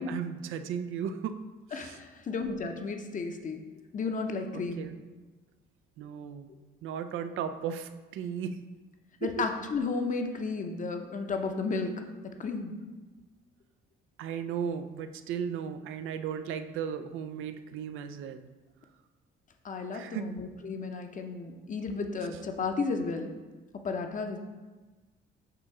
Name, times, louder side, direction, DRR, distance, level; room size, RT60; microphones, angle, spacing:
voice 1, 0.0-1.4 1.7-2.0 4.5-5.0 6.0-6.5 6.8-8.7 9.2-9.3 14.2-18.5 19.9-20.3, right 7 dB, 85° right, 9 dB, 0.5 m, -36 dB
voice 2, 1.7-3.6 3.9-4.9 9.2-11.9 12.2-12.8 19.6-23.3 23.7-24.4, left 4 dB, 40° left, 5 dB, 0.7 m, -33 dB
6.7 x 3.0 x 4.8 m, 1.3 s
cardioid pair, 90°, 20 cm